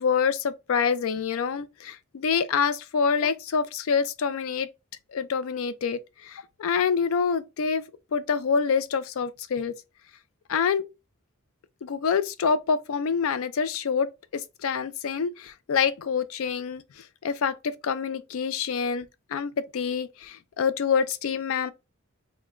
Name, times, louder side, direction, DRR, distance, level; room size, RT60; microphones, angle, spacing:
voice 1, 0.0-4.7 5.1-7.8 8.1-9.7 10.5-10.9 11.8-14.1 14.3-16.8 17.2-21.7, left 6 dB, 70° left, 0.4 m, -26 dB
3.6 x 2.1 x 3.0 m
head